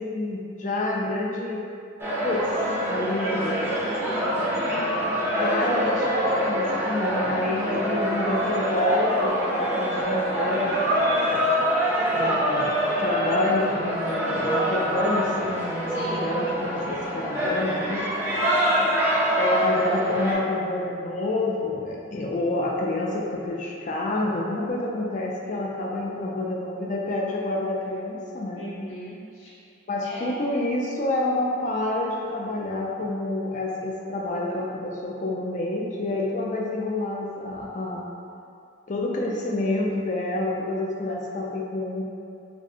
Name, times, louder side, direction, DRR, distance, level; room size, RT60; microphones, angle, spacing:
voice 1, 0.0-1.6 2.2-2.4 2.9-3.8 5.4-11.5 12.1-18.1 19.4-28.6 29.9-38.1 38.9-42.0, left 2 dB, 40° left, -2 dB, 0.4 m, -28 dB
sound 1, 2.0-20.3, equal, 10° right, 0.5 m, -25 dB
voice 2, 4.0-5.5 15.9-16.5 18.1-19.0 28.5-29.5 30.0-30.4, equal, 80° left, -11 dB, 1.3 m, -40 dB
5.1 x 2.0 x 2.7 m, 2.5 s
head